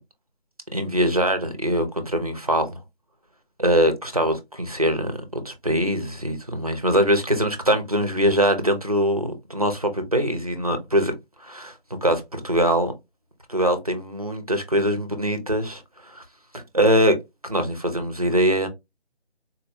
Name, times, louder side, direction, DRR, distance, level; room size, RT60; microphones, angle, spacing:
voice 1, 0.7-2.8 3.6-11.2 11.4-11.7 12.0-12.9 13.5-16.2 16.5-17.2 17.4-18.7, equal, 35° right, 0.5 m, -22 dB
4.1 x 2.1 x 2.5 m
figure-of-eight pair, 170°, 34 cm